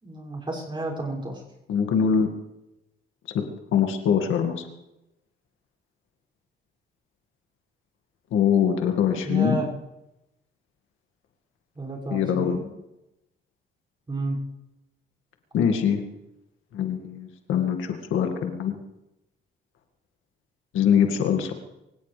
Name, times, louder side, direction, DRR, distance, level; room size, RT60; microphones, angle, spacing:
voice 1, 0.0-1.4 9.2-9.7 11.8-12.6 14.1-14.4, right 2 dB, 25° right, -3 dB, 6.4 m, -31 dB
voice 2, 1.7-2.3 3.3-3.4 3.7-4.6 8.3-9.6 12.1-12.6 15.5-16.0 16.7-18.8 20.7-21.5, left 8 dB, 80° left, 4 dB, 2.1 m, -23 dB
24.0 x 17.0 x 3.4 m, 0.92 s
cardioid pair, 90°, 20 cm